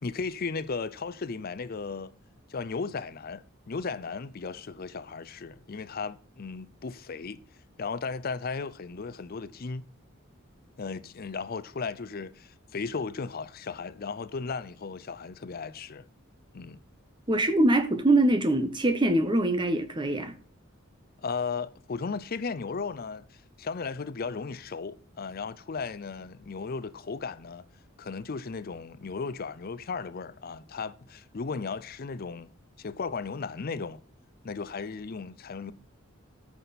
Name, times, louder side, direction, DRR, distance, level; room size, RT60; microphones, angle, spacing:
voice 1, 0.0-2.1 2.5-7.4 7.8-9.9 10.8-16.1 16.5-16.8 21.2-27.6 28.0-32.5 32.8-34.0 34.4-35.7, left 4 dB, 45° left, 0.5 m, -35 dB
voice 2, 17.3-20.3, right 1 dB, 25° right, 0.9 m, -23 dB
14.5 x 6.1 x 4.1 m
head